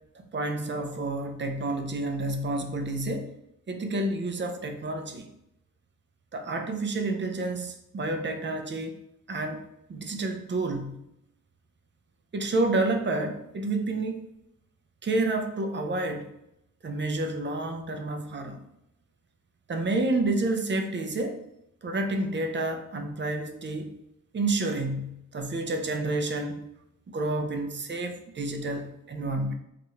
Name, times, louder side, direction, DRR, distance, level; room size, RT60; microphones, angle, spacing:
voice 1, 0.1-3.3 3.7-5.3 6.3-9.0 9.3-9.6 9.9-10.9 12.3-14.3 15.0-16.3 16.8-18.6 19.7-21.4 21.8-23.9 24.3-26.6 27.1-29.5, right 2 dB, 35° right, 5 dB, 0.5 m, -29 dB
2.9 x 2.5 x 4.2 m, 0.81 s
wide cardioid pair, 130°, 32 cm